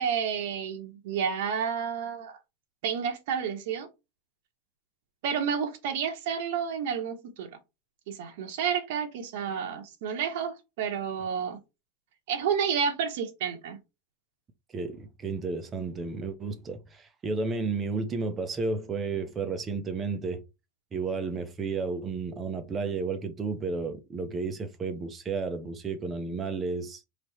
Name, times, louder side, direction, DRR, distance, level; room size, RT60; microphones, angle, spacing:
voice 1, 0.0-2.4 2.8-3.9 5.2-7.5 8.1-11.6 12.3-13.8, right 7 dB, 65° right, 1.0 m, -30 dB
voice 2, 14.7-20.4 20.9-27.0, right 4 dB, 20° right, 0.6 m, -32 dB
3.2 x 2.9 x 4.2 m
supercardioid pair, 160°, 0 cm